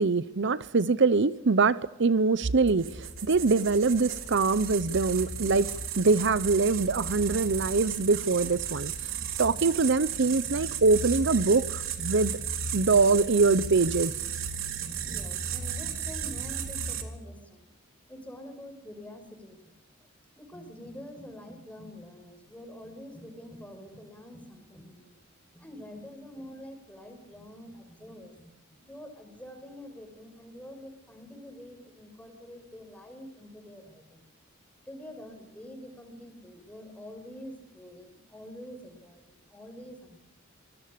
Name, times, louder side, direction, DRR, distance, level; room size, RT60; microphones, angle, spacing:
voice 1, 0.0-5.7 6.0-9.1 9.4-12.3 12.7-14.1, right 4 dB, 60° right, 0.8 m, -24 dB
sound 1, 2.7-17.0, right 7 dB, 80° right, 3.6 m, -34 dB
voice 2, 14.8-17.7 18.1-19.8 20.4-25.2 25.5-28.5 28.8-34.2 34.9-40.2, equal, 5° left, 6.0 m, -46 dB
26.0 x 21.0 x 6.8 m
head